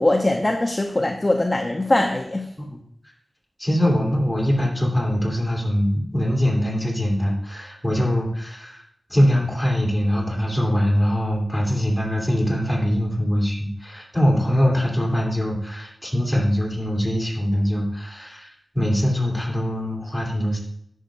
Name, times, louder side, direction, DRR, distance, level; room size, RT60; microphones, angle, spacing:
voice 1, 0.0-2.5, left 1 dB, 25° left, 2 dB, 0.6 m, -21 dB
voice 2, 3.6-8.8 9.1-18.5 18.7-20.6, equal, ahead, -3 dB, 2.9 m, -22 dB
10.5 x 6.4 x 2.5 m, 0.72 s
wide cardioid pair, 65°, 0 cm